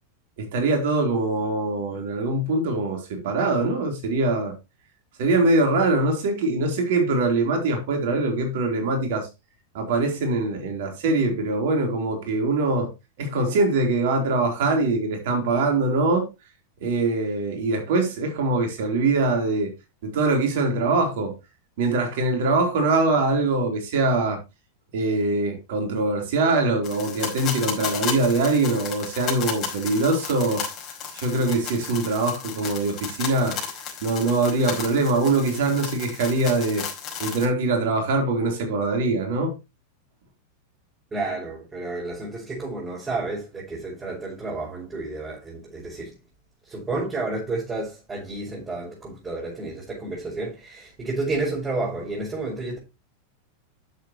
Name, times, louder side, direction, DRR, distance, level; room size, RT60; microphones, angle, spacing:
voice 1, 0.4-4.5 5.2-9.3 9.7-12.9 13.2-16.3 16.8-19.7 20.0-21.3 21.8-24.4 24.9-30.6 31.1-33.6 34.0-36.9 37.2-39.6, right 2 dB, 65° right, 3.8 m, -23 dB
sound 1, 26.8-37.5, left 7 dB, 40° left, 5.1 m, -34 dB
voice 2, 41.1-46.1 46.6-52.8, right 2 dB, 20° right, 5.5 m, -31 dB
11.0 x 7.5 x 3.1 m
hypercardioid pair, 95°, 0 cm